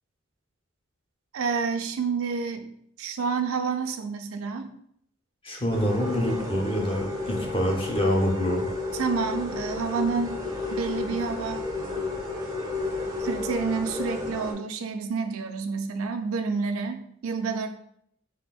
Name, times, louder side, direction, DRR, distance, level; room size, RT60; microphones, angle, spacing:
voice 1, 1.3-2.7 3.0-4.7 8.9-10.4 10.7-11.7 13.2-17.7, right 5 dB, 85° right, 7 dB, 0.4 m, -29 dB
voice 2, 5.4-8.7, equal, 25° left, 1 dB, 0.6 m, -26 dB
sound 1, 5.7-14.5, left 3 dB, 15° right, 0.5 m, -32 dB
4.2 x 3.4 x 2.3 m, 0.69 s
head